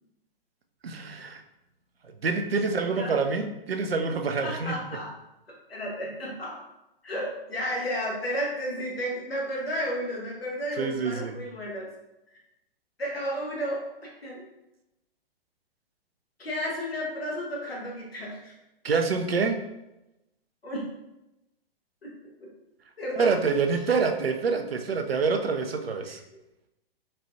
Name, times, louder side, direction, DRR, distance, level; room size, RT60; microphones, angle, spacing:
voice 1, 0.8-1.4 2.2-4.8 10.8-11.4 18.8-19.6 23.2-26.2, right 4 dB, 85° right, 5 dB, 0.5 m, -26 dB
voice 2, 4.4-5.1 5.7-6.6 7.0-11.9 13.0-14.4 16.4-18.5 20.6-20.9 22.0-22.1 22.4-22.5 23.0-23.3 26.1-26.2, equal, 80° left, -3 dB, 1.1 m, -32 dB
4.2 x 2.2 x 2.6 m, 0.92 s
figure-of-eight pair, 115°, 30 cm